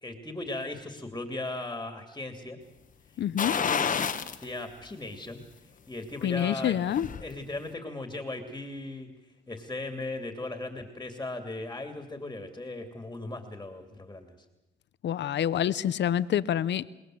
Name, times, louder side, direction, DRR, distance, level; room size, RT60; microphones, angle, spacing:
voice 1, 0.0-2.6 3.4-3.9 4.4-5.4 5.9-6.8 7.2-9.1 9.5-14.3, left 2 dB, 15° left, 6 dB, 2.8 m, -37 dB
voice 2, 3.2-3.5 6.2-7.1 15.0-16.9, left 10 dB, 65° left, 16 dB, 0.9 m, -27 dB
sound 1, 3.4-4.4 4.9-5.0 6.5-7.3 7.6-7.7, left 6 dB, 40° left, 1.3 m, -29 dB
28.0 x 19.0 x 7.9 m, 1.0 s
cardioid pair, 90°, 20 cm